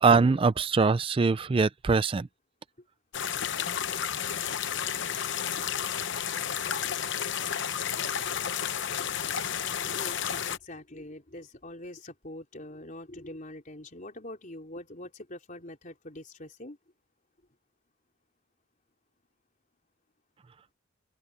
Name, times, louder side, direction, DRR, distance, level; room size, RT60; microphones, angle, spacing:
voice 1, 0.0-2.3, right 4 dB, 25° right, 0.3 m, -23 dB
sound 1, 3.1-10.6, left 8 dB, 60° left, 0.9 m, -31 dB
voice 2, 9.5-16.8, left 1 dB, 40° left, 4.1 m, -44 dB
open air
head